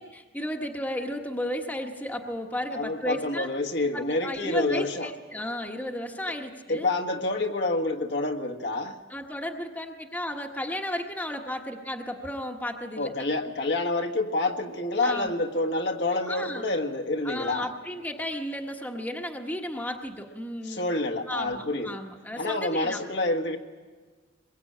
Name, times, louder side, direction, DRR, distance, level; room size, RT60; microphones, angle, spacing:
voice 1, 0.0-3.5 3.9-6.9 9.1-13.1 15.0-15.4 16.3-16.6 17.2-20.8 21.3-23.0, left 1 dB, 10° left, 2 dB, 1.4 m, -34 dB
voice 2, 2.7-5.1 6.7-9.0 13.0-17.7 20.6-22.0 22.4-23.6, left 2 dB, 60° left, 4 dB, 1.5 m, -28 dB
22.5 x 22.0 x 8.7 m, 1.4 s
head